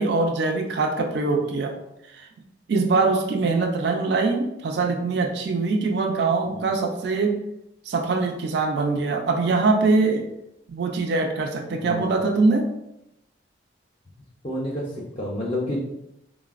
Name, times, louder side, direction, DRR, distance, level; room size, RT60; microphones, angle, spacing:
voice 1, 0.0-1.7 2.1-2.3 2.7-7.4 7.9-10.3 10.7-12.7, right 3 dB, 65° right, 3 dB, 0.4 m, -23 dB
voice 2, 11.7-12.1 14.4-15.8, left 1 dB, 30° left, -5 dB, 0.4 m, -29 dB
3.9 x 2.0 x 2.3 m, 0.84 s
head